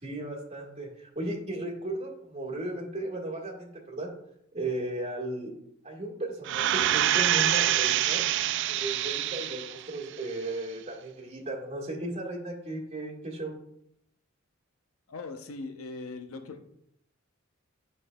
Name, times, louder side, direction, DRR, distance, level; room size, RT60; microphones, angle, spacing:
voice 1, 0.0-4.1 4.5-5.5 5.8-8.2 8.7-13.5, right 2 dB, 30° right, -4 dB, 1.4 m, -35 dB
sound 1, 6.5-9.9 10.3-10.4, right 12 dB, 60° right, 0.3 m, -26 dB
voice 2, 15.1-16.6, left 3 dB, 90° left, 6 dB, 0.6 m, -40 dB
9.7 x 5.4 x 2.2 m, 0.75 s
head